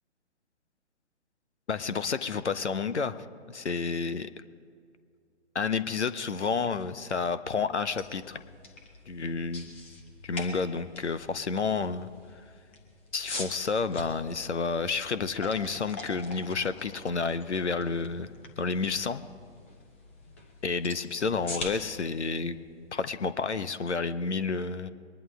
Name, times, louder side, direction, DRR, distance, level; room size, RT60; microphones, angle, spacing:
voice 1, 1.7-3.2 3.5-4.3 5.5-8.4 9.1-9.7 10.2-12.1 13.1-18.3 18.6-19.3 20.6-22.6 22.9-24.9, left 4 dB, 70° left, 12 dB, 0.8 m, -30 dB
sound 1, 7.8-23.7, left 2 dB, 10° left, 0.5 m, -45 dB
22.5 x 19.5 x 2.3 m, 2.2 s
figure-of-eight pair, 135°, 35 cm